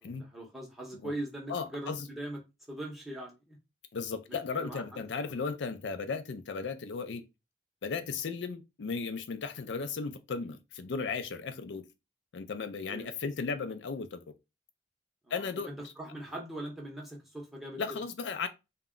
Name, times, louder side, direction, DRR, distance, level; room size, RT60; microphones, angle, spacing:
voice 1, 0.0-2.4 2.7-3.6 4.3-5.0 12.9-13.1 15.3-17.8, right 1 dB, ahead, 0.8 m, -41 dB
voice 2, 1.5-2.1 3.9-7.2 7.8-11.8 12.3-14.3 15.3-15.7 17.8-18.5, left 5 dB, 80° left, 0.4 m, -35 dB
2.2 x 2.1 x 3.6 m
head